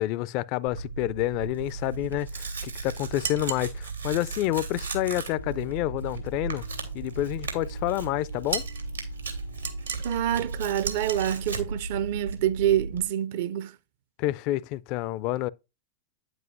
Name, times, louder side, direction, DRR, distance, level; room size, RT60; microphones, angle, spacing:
voice 1, 0.0-6.7 6.9-8.7 14.2-15.5, left 15 dB, 45° left, 0.4 m, -29 dB
Tearing, 0.7-13.0, right 4 dB, 90° right, 2.6 m, -36 dB
sound 1, 3.2-3.7 8.5-8.8 9.6-10.2 10.8-11.3, right 6 dB, 70° right, 1.3 m, -33 dB
sound 2, 5.4-12.6, left 4 dB, 90° left, 0.6 m, -45 dB
voice 2, 10.0-13.8, right 11 dB, 55° right, 0.5 m, -27 dB
9.1 x 7.9 x 2.5 m
figure-of-eight pair, 95°, 0 cm